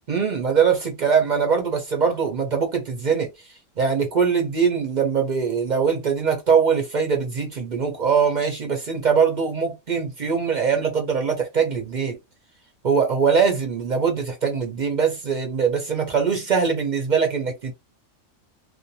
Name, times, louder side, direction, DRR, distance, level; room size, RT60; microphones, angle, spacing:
voice 1, 0.1-3.3 3.8-12.2 12.8-17.7, right 6 dB, 50° right, 0.5 m, -22 dB
2.4 x 2.1 x 2.7 m
omnidirectional pair, 1.3 m